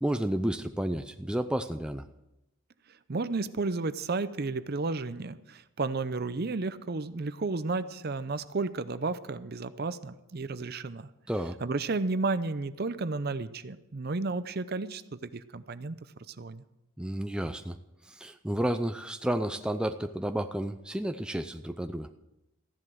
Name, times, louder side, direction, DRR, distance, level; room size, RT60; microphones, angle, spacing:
voice 1, 0.0-2.0 11.3-11.6 17.0-17.8 18.2-22.1, right 1 dB, 5° right, 7 dB, 0.5 m, -31 dB
voice 2, 3.1-11.1 11.6-16.0 16.3-16.6, right 3 dB, 45° right, 14 dB, 0.6 m, -32 dB
15.0 x 11.0 x 6.3 m, 0.91 s
head